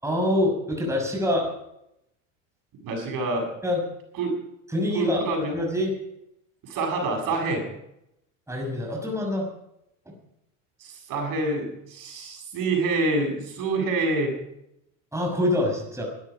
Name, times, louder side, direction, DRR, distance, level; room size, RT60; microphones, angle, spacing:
voice 1, 0.0-1.5 3.6-3.8 4.7-5.2 5.5-5.9 8.5-9.5 15.1-16.0, left 1 dB, 5° right, 1 dB, 6.2 m, -25 dB
voice 2, 2.8-3.5 4.2-4.4 4.9-5.5 6.6-7.7 10.8-14.4, right 2 dB, 55° right, 3 dB, 7.4 m, -26 dB
21.0 x 12.5 x 5.1 m, 0.80 s
supercardioid pair, 90°, 39 cm